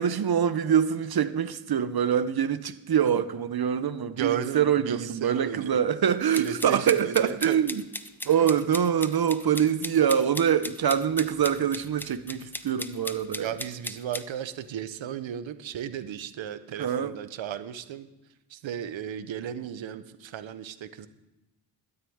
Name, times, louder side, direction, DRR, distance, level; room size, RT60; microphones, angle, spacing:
voice 1, 0.0-7.8 8.3-13.5 16.8-17.1, right 8 dB, 55° right, 0.9 m, -24 dB
voice 2, 4.1-5.9 6.4-7.6 8.2-8.5 13.4-18.1 18.5-21.1, right 9 dB, 85° right, 1.0 m, -35 dB
sound 1, 6.3-14.2, left 1 dB, 5° left, 0.7 m, -37 dB
12.5 x 6.8 x 8.7 m
cardioid pair, 80°, 45 cm